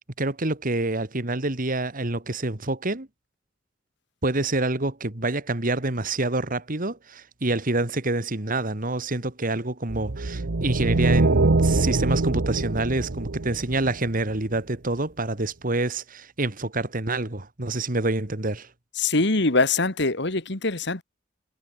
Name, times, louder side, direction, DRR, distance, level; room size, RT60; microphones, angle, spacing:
voice 1, 0.2-3.1 4.2-18.7, right 2 dB, 45° right, 2.2 m, -27 dB
sound 1, 9.9-14.3, right 2 dB, 80° right, 1.0 m, -23 dB
voice 2, 19.0-21.0, left 3 dB, 65° left, 2.3 m, -23 dB
head